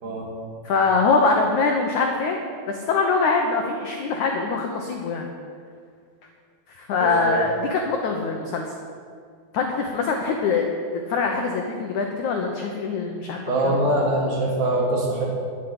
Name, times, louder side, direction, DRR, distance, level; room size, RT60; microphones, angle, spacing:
voice 1, 0.6-2.4 2.7-5.3 6.8-8.6 9.5-10.7 11.1-13.8, left 4 dB, 80° left, 2 dB, 1.7 m, -23 dB
voice 2, 7.0-7.4 13.5-15.3, right 1 dB, 60° right, -2 dB, 4.2 m, -23 dB
11.5 x 8.3 x 9.8 m, 2.1 s
omnidirectional pair, 5.0 m